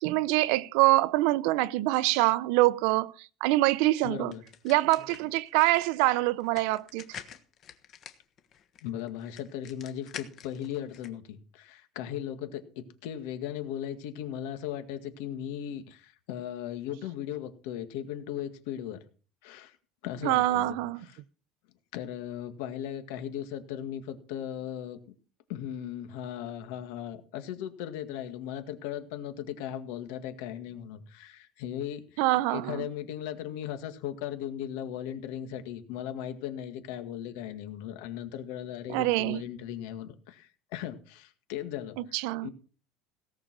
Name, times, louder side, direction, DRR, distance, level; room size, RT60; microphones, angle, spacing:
voice 1, 0.0-4.3 4.6-7.2 20.2-21.0 32.2-32.9 38.9-39.4 42.1-42.5, right 18 dB, 70° right, 0.6 m, -25 dB
voice 2, 4.0-4.4 8.8-19.0 19.4-19.8 20.0-20.8 21.0-21.2 21.9-25.0 25.5-32.2 32.5-42.5, left 10 dB, 75° left, 2.0 m, -37 dB
sound 1, 4.3-11.1, left 9 dB, 35° left, 1.3 m, -48 dB
17.5 x 6.7 x 6.2 m
cardioid pair, 170°, 0 cm